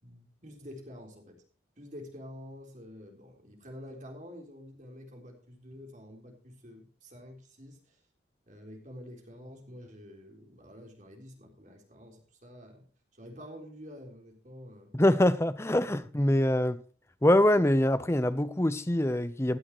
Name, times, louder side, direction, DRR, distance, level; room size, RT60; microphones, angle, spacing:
voice 1, 0.0-1.4 1.8-8.0 8.5-12.9 13.1-14.9, left 1 dB, 45° right, 3.8 m, -48 dB
voice 2, 14.9-16.8 17.2-19.6, left 1 dB, 15° left, 0.7 m, -24 dB
16.5 x 11.5 x 3.1 m
head